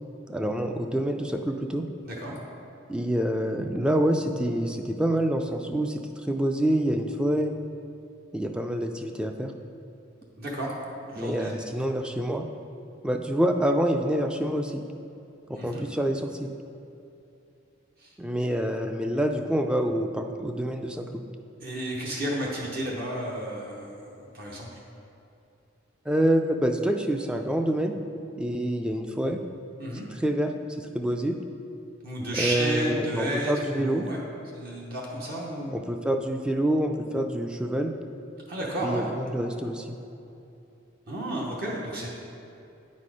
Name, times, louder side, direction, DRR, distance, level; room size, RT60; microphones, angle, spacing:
voice 1, 0.3-1.8 2.9-6.0 6.3-7.5 8.3-9.5 11.2-12.4 13.0-14.8 15.5-16.5 18.2-21.2 26.1-27.9 28.4-29.4 30.2-30.5 30.8-31.3 32.4-34.0 35.7-37.9 38.8-40.0, right 1 dB, 5° right, 5 dB, 0.3 m, -26 dB
voice 2, 2.0-2.4 10.4-10.7 11.0-11.5 15.5-15.8 18.0-18.1 21.6-24.7 29.8-30.1 32.0-34.2 34.5-35.8 38.5-39.1 41.1-42.1, right 1 dB, 50° right, -3 dB, 0.9 m, -32 dB
9.0 x 4.2 x 4.8 m, 2.7 s
head